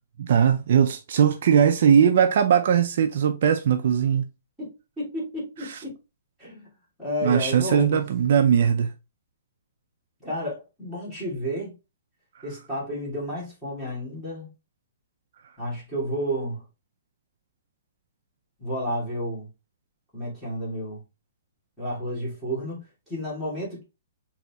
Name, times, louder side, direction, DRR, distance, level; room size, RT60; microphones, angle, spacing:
voice 1, 0.2-4.2 5.7-5.8 7.2-8.9, right 8 dB, 50° right, 0.4 m, -20 dB
voice 2, 4.6-6.0 6.4-6.7 7.0-8.0 10.2-11.8 12.4-14.5 15.6-16.6 18.6-19.5 20.1-21.0 21.8-23.8, equal, ahead, 2.0 m, -31 dB
3.9 x 2.8 x 3.4 m
hypercardioid pair, 170°, 0 cm